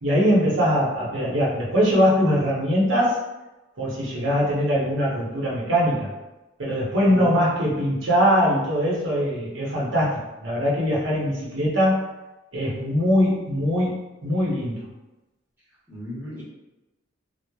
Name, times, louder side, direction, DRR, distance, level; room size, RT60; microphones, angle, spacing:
voice 1, 0.0-3.2 3.8-6.1 6.6-12.1 12.5-14.8, equal, 90° right, -5 dB, 0.8 m, -22 dB
voice 2, 7.1-7.4 7.7-7.9 15.9-16.4, left 1 dB, 10° right, -9 dB, 0.9 m, -36 dB
3.0 x 2.0 x 2.3 m, 1.0 s
head